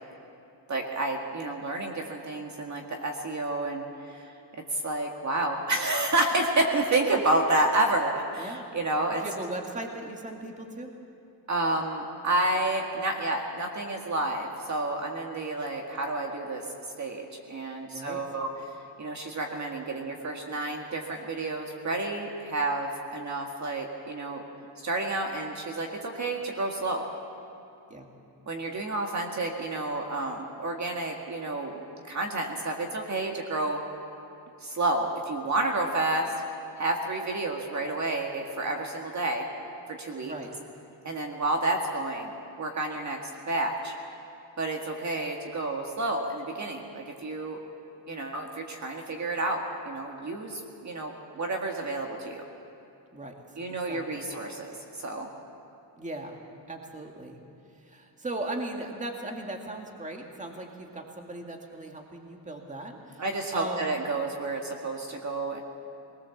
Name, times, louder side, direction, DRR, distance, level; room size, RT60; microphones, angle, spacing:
voice 1, 0.7-4.3 4.7-9.2 11.5-16.7 17.0-18.5 19.0-24.4 24.8-27.0 28.5-33.8 34.6-36.3 36.8-39.5 39.9-40.3 41.0-42.3 42.6-44.0 44.6-47.6 48.1-52.4 53.6-55.3 63.2-65.6, right 2 dB, 35° right, 2 dB, 1.9 m, -30 dB
voice 2, 8.4-8.7 9.2-10.9 17.9-18.2 27.9-28.1 40.2-40.5 53.1-53.3 53.7-54.3 56.0-56.4 56.7-57.4 57.7-63.2 63.5-64.0, right 2 dB, 15° right, 2 dB, 2.1 m, -38 dB
21.5 x 19.5 x 7.2 m, 2.7 s
cardioid pair, 125°, 46 cm